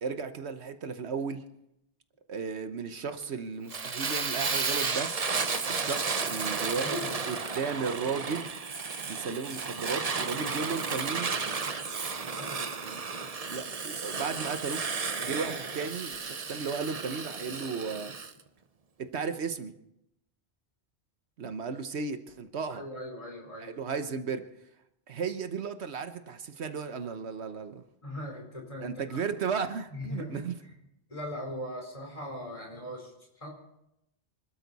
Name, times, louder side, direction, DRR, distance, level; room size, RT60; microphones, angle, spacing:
voice 1, 0.0-1.4 2.3-5.1 5.7-7.0 7.2-8.5 9.1-11.3 12.8-13.0 13.5-14.8 15.2-18.1 19.0-19.7 21.4-22.8 23.6-24.4 25.1-27.8 28.8-30.6, right 5 dB, 75° right, 9 dB, 1.2 m, -35 dB
Fire, 3.7-18.3, right 4 dB, 35° right, 0.9 m, -33 dB
voice 2, 6.8-7.2 12.3-12.7 22.7-23.7 28.0-29.2 29.9-30.7 31.1-33.5, equal, 30° left, 0 dB, 4.1 m, -40 dB
26.0 x 12.5 x 4.1 m, 0.82 s
omnidirectional pair, 1.1 m